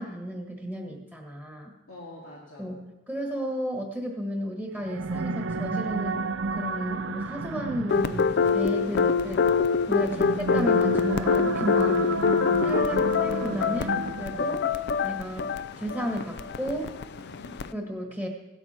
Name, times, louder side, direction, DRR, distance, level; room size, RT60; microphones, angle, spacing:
voice 1, 0.0-1.7 2.6-9.5 9.9-12.1 12.6-14.6 15.0-17.0 17.7-18.3, equal, 5° left, 1 dB, 1.5 m, -33 dB
voice 2, 1.9-2.7 10.0-10.3 14.3-14.6 17.2-17.5, left 1 dB, 90° left, -5 dB, 2.6 m, -46 dB
sound 1, 4.7-14.6, right 3 dB, 70° right, 0.6 m, -32 dB
sound 2, 7.9-17.7, left 5 dB, 55° left, 0.5 m, -25 dB
16.5 x 12.5 x 4.3 m, 1.0 s
head